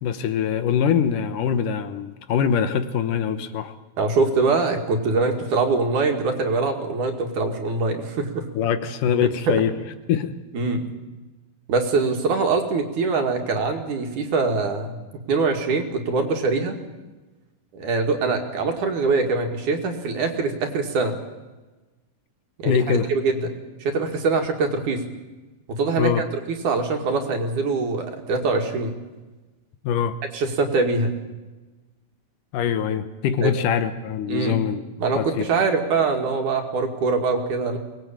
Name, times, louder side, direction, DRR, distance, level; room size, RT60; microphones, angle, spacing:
voice 1, 0.0-3.7 8.5-9.8 10.1-10.4 22.6-23.1 26.0-26.3 29.8-30.2 32.5-34.8 35.2-35.5, left 7 dB, 70° left, 11 dB, 2.5 m, -23 dB
voice 2, 4.0-8.5 10.5-10.8 11.7-15.0 15.3-16.8 17.7-21.1 22.6-25.0 25.7-26.1 26.6-28.9 30.3-31.2 33.4-33.5 34.3-34.7 35.0-37.8, right 4 dB, 60° right, 4 dB, 3.6 m, -23 dB
23.5 x 19.0 x 8.9 m, 1.2 s
omnidirectional pair, 4.1 m